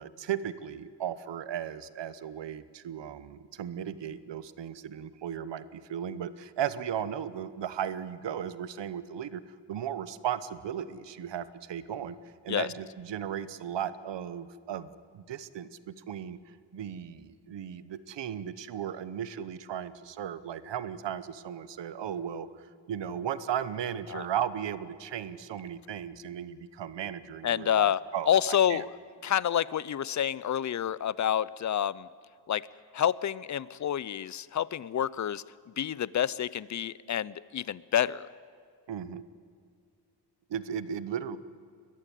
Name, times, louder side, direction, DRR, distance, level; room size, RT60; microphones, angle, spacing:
voice 1, 0.0-9.4 9.7-12.2 12.4-16.4 16.7-28.8 38.9-39.2 40.5-41.4, right 9 dB, 75° right, 15 dB, 1.0 m, -36 dB
voice 2, 27.4-28.0 28.3-28.9 29.2-32.1 32.5-32.7 32.9-35.4 35.8-38.3, left 10 dB, 45° left, 20 dB, 0.5 m, -28 dB
21.5 x 14.5 x 9.9 m, 2.1 s
cardioid pair, 105°, 43 cm